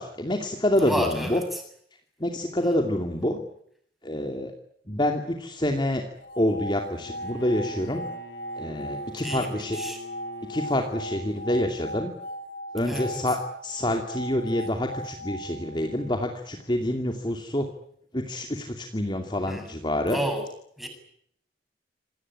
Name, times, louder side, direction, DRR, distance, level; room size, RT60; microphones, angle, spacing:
voice 1, 0.0-1.4 2.2-3.4 4.0-4.5 4.9-6.0 6.4-8.0 8.6-9.8 10.5-12.1 12.7-17.7 18.1-20.2, left 1 dB, 25° left, 4 dB, 2.6 m, -27 dB
voice 2, 0.8-1.4 2.6-2.7 9.2-10.0 12.8-13.2 19.5-19.7 20.1-20.5 20.8-20.9, equal, ahead, 5 dB, 7.4 m, -31 dB
sound 1, 6.2-16.3, equal, 60° left, 3.4 m, -38 dB
Bowed string instrument, 6.8-11.6, left 2 dB, 80° left, 3.5 m, -44 dB
27.0 x 18.5 x 9.9 m, 0.69 s
head